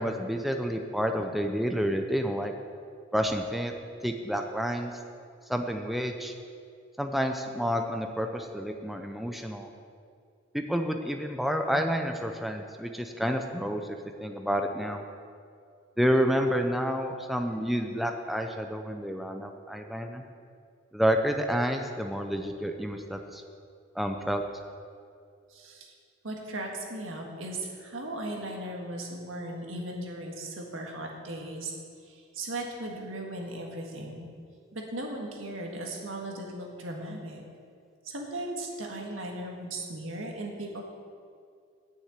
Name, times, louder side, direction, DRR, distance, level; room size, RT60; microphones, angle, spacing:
voice 1, 0.0-2.5 3.1-3.7 4.0-4.9 5.5-6.3 7.0-9.7 10.5-15.0 16.0-20.2 20.9-23.4 24.0-24.4, equal, ahead, 4 dB, 0.5 m, -29 dB
voice 2, 25.5-25.9 26.2-31.7 32.1-34.3 34.7-37.4 38.0-40.8, right 1 dB, 85° right, 1 dB, 1.7 m, -37 dB
9.4 x 6.5 x 8.2 m, 2.3 s
head